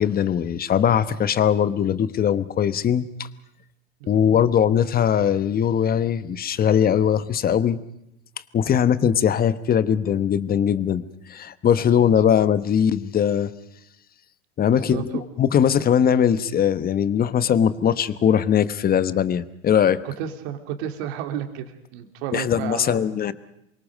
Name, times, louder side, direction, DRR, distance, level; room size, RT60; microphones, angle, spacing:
voice 1, 0.0-3.3 4.1-7.8 8.5-11.0 11.3-13.5 14.6-20.0 22.3-23.3, left 8 dB, 25° left, 14 dB, 1.1 m, -20 dB
voice 2, 14.7-15.2 20.0-23.0, right 10 dB, 55° right, 5 dB, 3.1 m, -32 dB
27.5 x 24.0 x 5.2 m, 0.81 s
hypercardioid pair, 100°, 37 cm